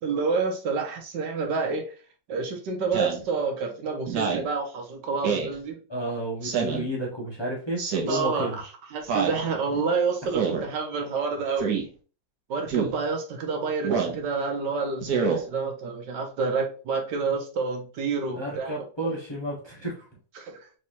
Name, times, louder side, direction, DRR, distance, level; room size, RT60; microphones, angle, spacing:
voice 1, 0.0-1.9 2.3-5.8 8.1-8.6 8.9-11.7 12.5-18.7 20.3-20.6, right 4 dB, 90° right, 4 dB, 1.5 m, -28 dB
Speech synthesizer, 2.9-3.2 4.1-4.5 5.2-5.5 6.4-6.9 7.8-8.2 9.1-9.4 10.3-10.7 11.6-11.8 12.7-12.9 13.8-14.2 15.0-15.4, right 6 dB, 70° right, 1.3 m, -26 dB
voice 2, 5.9-8.6 18.3-20.0, right 1 dB, 25° left, -3 dB, 0.7 m, -31 dB
3.4 x 3.1 x 2.8 m, 0.38 s
omnidirectional pair, 1.8 m